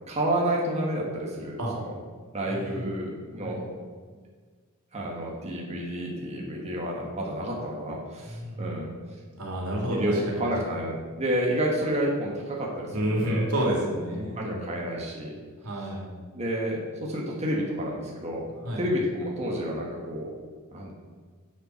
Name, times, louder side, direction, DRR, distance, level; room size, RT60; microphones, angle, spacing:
voice 1, 0.1-1.9 2.3-3.7 4.9-8.9 9.9-10.1 10.4-13.5 14.2-15.4 16.3-18.5 18.8-20.3 20.7-20.9, right 1 dB, 30° right, -3 dB, 1.7 m, -30 dB
voice 2, 2.5-2.9 3.4-3.6 8.3-8.8 9.4-10.4 10.7-10.8 12.9-14.8 15.6-16.1 18.6-18.8, right 1 dB, 90° right, -2 dB, 2.7 m, -30 dB
10.0 x 7.4 x 4.5 m, 1.5 s
head